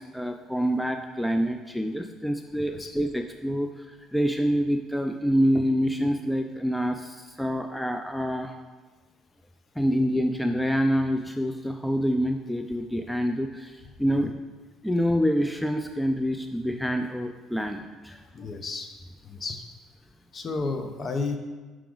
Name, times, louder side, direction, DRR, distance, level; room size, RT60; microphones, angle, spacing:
voice 1, 0.0-8.5 9.8-14.3 14.8-18.2, equal, 5° left, 5 dB, 0.3 m, -26 dB
voice 2, 18.3-18.9 19.2-19.6 20.3-21.4, left 3 dB, 40° left, 6 dB, 0.7 m, -32 dB
5.9 x 4.8 x 3.8 m, 1.3 s
supercardioid pair, 85°, 0 cm